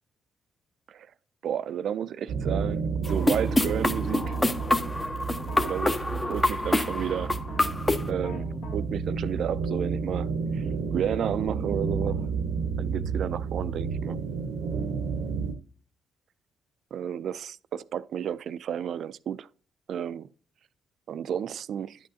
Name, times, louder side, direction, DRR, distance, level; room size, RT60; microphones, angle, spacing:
voice 1, 1.4-4.4 5.6-7.3 8.1-8.5 8.7-10.6 10.9-12.3 12.8-14.2 16.9-19.5 19.9-20.3 21.1-22.0, right 9 dB, 65° right, 0.3 m, -32 dB
sound 1, 2.3-15.5, right 5 dB, 85° right, 0.7 m, -31 dB
sound 2, 3.0-8.1, left 1 dB, 20° left, 0.6 m, -26 dB
sound 3, 3.8-4.7 5.4-8.8, left 2 dB, 65° left, 1.5 m, -43 dB
10.5 x 6.2 x 2.7 m
cardioid pair, 90°, 0 cm